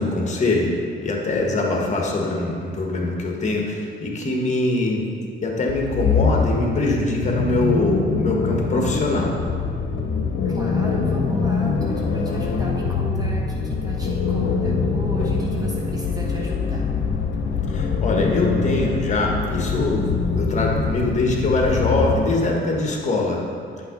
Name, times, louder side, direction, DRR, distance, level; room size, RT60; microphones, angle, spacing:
voice 1, 0.0-5.0 5.4-9.4 17.7-23.4, left 2 dB, 35° left, -1 dB, 1.6 m, -23 dB
sound 1, 5.7-22.6, left 5 dB, 70° left, 0.8 m, -24 dB
voice 2, 10.5-16.9, equal, 20° right, -3 dB, 1.4 m, -34 dB
9.3 x 5.5 x 4.0 m, 2.3 s
cardioid pair, 90°, 20 cm